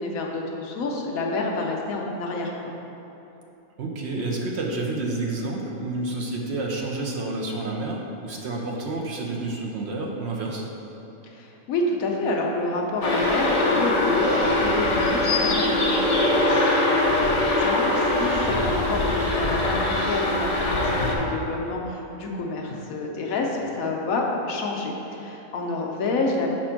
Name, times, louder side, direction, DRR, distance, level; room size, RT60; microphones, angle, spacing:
voice 1, 0.0-2.5 11.2-16.0 16.4-26.5, left 2 dB, 75° left, 0 dB, 1.2 m, -28 dB
voice 2, 3.8-10.6 16.3-16.7, right 2 dB, 55° right, -1 dB, 0.9 m, -29 dB
sound 1, 13.0-21.1, left 2 dB, 35° left, 0.7 m, -22 dB
5.8 x 4.3 x 5.7 m, 3.0 s
omnidirectional pair, 1.5 m